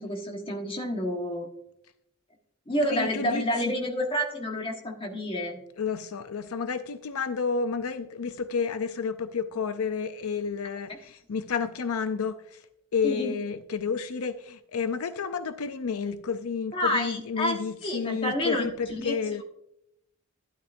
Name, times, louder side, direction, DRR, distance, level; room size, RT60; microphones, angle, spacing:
voice 1, 0.0-1.5 2.7-5.6 13.0-13.3 16.7-19.4, equal, 25° left, 2 dB, 1.4 m, -29 dB
voice 2, 2.8-3.7 5.8-12.6 12.9-19.4, left 5 dB, 75° left, 10 dB, 0.5 m, -31 dB
12.0 x 11.5 x 2.6 m, 0.77 s
head